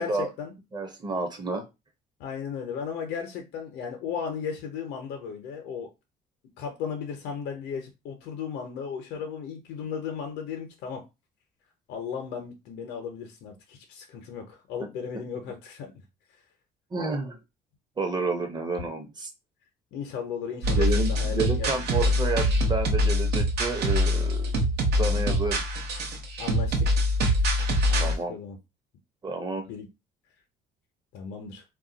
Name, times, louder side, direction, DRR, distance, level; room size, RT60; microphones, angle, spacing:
voice 1, 0.0-0.5 2.2-5.9 6.6-11.0 11.9-15.9 18.8-18.9 19.9-21.7 22.0-22.1 25.0-25.3 26.4-27.0 27.9-28.6 29.7-29.9 31.1-31.6, left 6 dB, 85° left, 0.7 m, -35 dB
voice 2, 0.7-1.6 16.9-17.4 18.0-19.3 20.7-24.5 25.0-25.6 28.0-28.3 29.2-29.7, right 3 dB, 25° right, 0.8 m, -30 dB
sound 1, 20.6-28.2, equal, 75° right, 0.8 m, -24 dB
2.4 x 2.2 x 3.8 m
cardioid pair, 110°, 17 cm